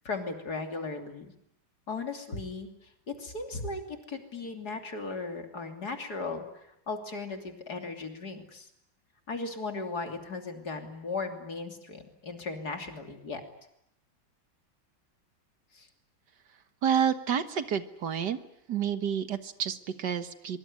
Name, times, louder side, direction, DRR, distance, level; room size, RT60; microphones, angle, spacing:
voice 1, 0.1-1.3 1.9-2.7 3.1-8.7 9.3-13.4 15.7-15.9, left 3 dB, 55° left, 5 dB, 3.4 m, -37 dB
voice 2, 16.8-18.4 18.7-20.6, right 8 dB, 60° right, 10 dB, 2.0 m, -29 dB
23.5 x 23.0 x 9.7 m, 0.79 s
omnidirectional pair, 2.1 m